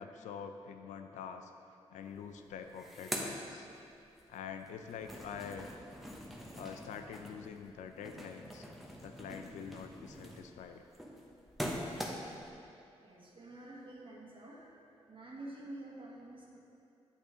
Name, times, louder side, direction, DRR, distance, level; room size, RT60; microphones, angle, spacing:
voice 1, 0.0-1.5 1.9-3.7 4.3-5.7 6.5-8.7 9.0-10.9, left 7 dB, 85° left, 7 dB, 0.4 m, -46 dB
sound 1, 2.1-2.2 2.5-4.2 4.6-12.5, equal, ahead, 1.0 m, -44 dB
voice 2, 13.0-14.8 15.1-16.6, right 1 dB, 45° right, -3 dB, 1.6 m, -48 dB
8.1 x 5.9 x 3.7 m, 2.6 s
supercardioid pair, 45°, 12 cm